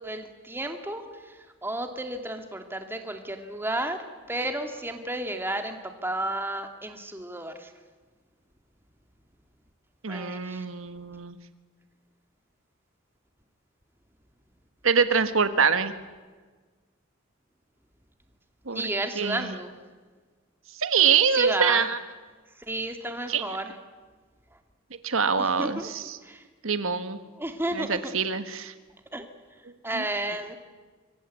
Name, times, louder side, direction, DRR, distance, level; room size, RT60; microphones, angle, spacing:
voice 1, 0.0-4.0 4.3-7.7 10.1-10.7 18.7-19.7 21.4-21.9 22.6-23.7 25.4-25.9 26.2-26.4 27.4-28.0 29.1-29.3 29.8-30.6, right 1 dB, 10° right, 5 dB, 2.3 m, -32 dB
voice 2, 10.0-11.4 14.8-15.9 18.7-18.8 19.1-19.5 20.8-22.0 23.3-23.6 25.0-26.2 26.6-27.2 27.7-28.7 29.9-30.0, right 6 dB, 80° right, 10 dB, 1.5 m, -24 dB
26.0 x 23.5 x 8.4 m, 1.4 s
head